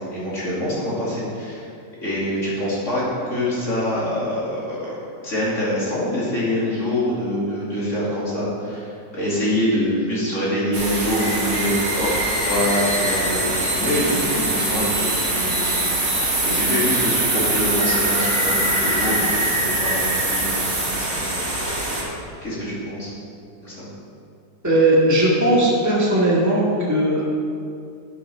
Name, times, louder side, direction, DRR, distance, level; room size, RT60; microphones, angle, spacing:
voice 1, 0.0-1.6 2.0-12.1 12.4-21.6 21.9-22.1 22.4-23.1 23.6-23.9, equal, 40° left, -8 dB, 3.1 m, -25 dB
sound 1, 10.7-22.0, right 1 dB, 80° right, 3.1 m, -22 dB
voice 2, 24.6-27.3, right 1 dB, 10° right, -6 dB, 1.9 m, -18 dB
9.8 x 7.1 x 5.6 m, 2.4 s
omnidirectional pair, 2.0 m